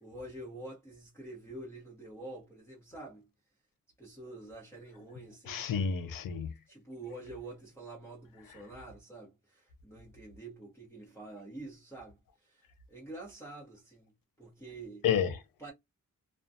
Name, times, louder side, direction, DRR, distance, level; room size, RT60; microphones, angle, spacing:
voice 1, 0.0-3.3 4.0-5.7 6.7-14.1 14.4-15.0 15.6-15.7, right 2 dB, 10° left, 1.0 m, -47 dB
voice 2, 5.4-6.5 8.5-8.6 15.0-15.4, left 7 dB, 90° left, 0.6 m, -30 dB
2.4 x 2.2 x 2.6 m
cardioid pair, 80°, 33 cm